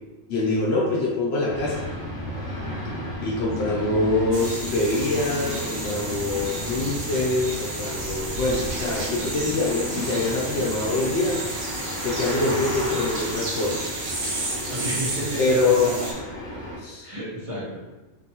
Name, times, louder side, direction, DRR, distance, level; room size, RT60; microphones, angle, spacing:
voice 1, 0.3-1.9 3.2-11.4 12.0-13.8 15.4-16.1 16.8-17.1, left 2 dB, 60° left, -3 dB, 0.9 m, -24 dB
sound 1, 1.5-16.8, left 1 dB, 30° left, 0.9 m, -33 dB
sound 2, 4.3-16.1, right 2 dB, 65° right, 0.9 m, -33 dB
voice 2, 14.7-16.1 17.0-17.8, right 1 dB, 30° right, -9 dB, 0.7 m, -31 dB
3.1 x 2.6 x 2.9 m, 1.1 s
omnidirectional pair, 1.3 m